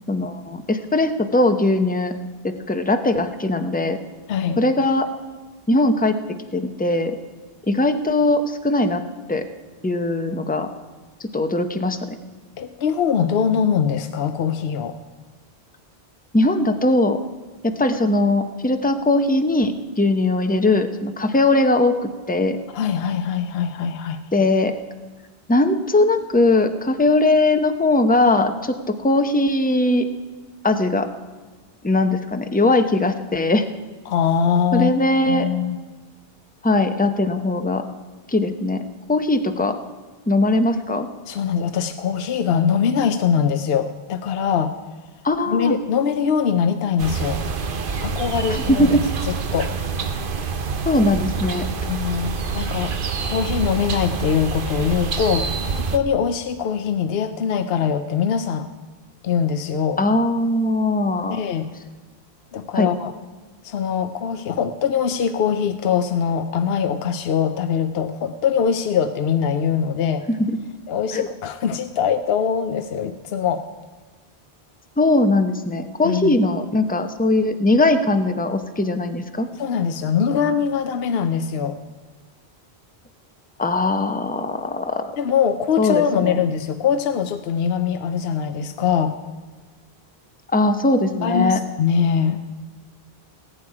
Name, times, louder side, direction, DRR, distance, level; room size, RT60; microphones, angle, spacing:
voice 1, 0.1-2.2 2.4-4.0 4.6-5.1 5.7-6.2 6.5-7.2 7.7-9.0 9.3-9.4 9.8-10.7 11.3-12.2 16.3-17.2 17.6-22.6 24.3-24.7 25.5-30.1 30.6-31.1 31.8-33.6 34.7-35.5 36.6-37.9 38.3-38.8 39.1-39.8 40.3-41.1 45.2-45.8 48.5-49.0 50.8-51.7 60.0-61.4 62.7-62.9 70.3-70.6 71.1-71.3 75.0-79.5 83.6-85.1 85.8-86.4 90.5-91.6, left 2 dB, 10° left, 7 dB, 0.8 m, -20 dB
voice 2, 4.3-4.6 12.6-15.0 22.7-24.2 34.1-34.9 35.3-35.8 41.3-44.7 45.5-47.4 48.0-49.7 51.9-53.0 53.3-58.7 59.2-60.0 61.3-61.7 62.5-63.1 63.6-70.2 70.9-73.7 76.0-76.4 79.6-81.8 85.2-89.2 91.2-92.4, left 7 dB, 75° left, 9 dB, 0.9 m, -22 dB
sound 1, 47.0-56.0, right 5 dB, 60° right, 1.1 m, -26 dB
19.0 x 9.1 x 4.8 m, 1.4 s
omnidirectional pair, 1.0 m